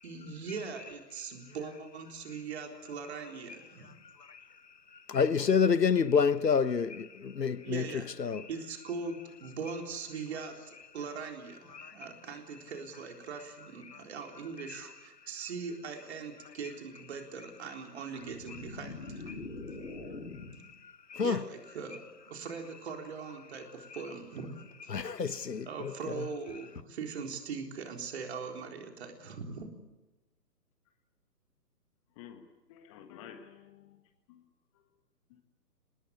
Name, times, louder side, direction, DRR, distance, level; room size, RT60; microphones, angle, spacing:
voice 1, 0.0-3.9 7.6-19.5 19.7-19.8 20.6-20.7 21.2-22.0 22.3-24.9 25.3-25.4 25.7-29.7, right 5 dB, 40° right, 3.9 m, -41 dB
voice 2, 5.1-7.8 8.2-8.4 11.7-11.9 21.1-21.4 24.9-25.7, left 6 dB, 80° left, 1.1 m, -27 dB
sound 1, 18.2-20.7, left 3 dB, 50° left, 5.0 m, -43 dB
voice 3, 32.2-34.0 34.3-34.4 35.3-35.4, left 8 dB, 20° left, 1.5 m, -51 dB
27.5 x 20.0 x 8.3 m
figure-of-eight pair, 135°, 48 cm